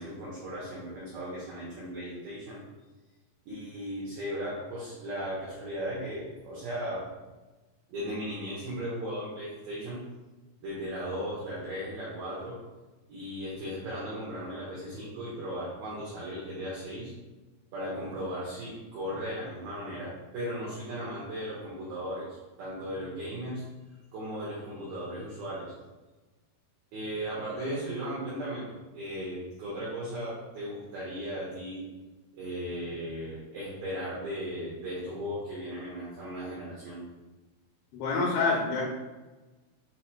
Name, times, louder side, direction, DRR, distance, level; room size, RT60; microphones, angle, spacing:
voice 1, 0.0-2.6 3.5-7.1 7.9-10.0 10.6-12.6 13.1-17.1 17.7-23.6 24.1-25.7 26.9-31.8 32.3-37.0, equal, 85° right, -7 dB, 2.1 m, -36 dB
voice 2, 37.9-38.8, left 3 dB, 80° left, -2 dB, 2.6 m, -27 dB
7.4 x 2.8 x 2.2 m, 1.2 s
omnidirectional pair, 5.6 m